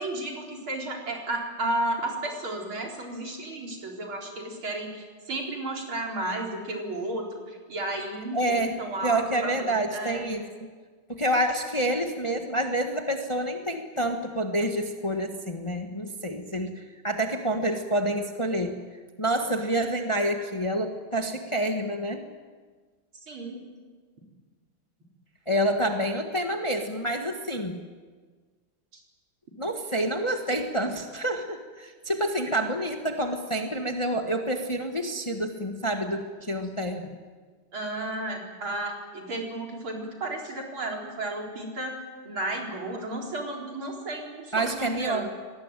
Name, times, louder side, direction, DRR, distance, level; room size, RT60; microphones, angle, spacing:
voice 1, 0.0-10.3 23.3-23.6 28.9-29.0 37.7-41.9 42.3-45.3, right 2 dB, 75° right, 0 dB, 5.1 m, -33 dB
voice 2, 8.3-8.8 9.0-10.7 11.1-18.8 19.2-22.2 25.5-27.8 29.6-37.2 44.5-45.3, right 1 dB, 15° left, 4 dB, 1.4 m, -28 dB
24.5 x 19.5 x 9.2 m, 1.5 s
omnidirectional pair, 2.3 m